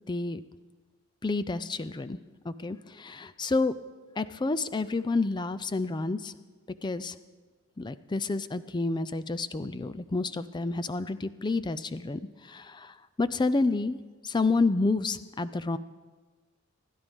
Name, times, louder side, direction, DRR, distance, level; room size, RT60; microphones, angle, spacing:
voice 1, 0.1-0.4 1.2-2.2 2.4-3.7 4.2-6.3 6.8-7.1 7.8-15.8, left 3 dB, 20° left, 14 dB, 0.4 m, -29 dB
26.0 x 11.5 x 3.6 m, 1.4 s
head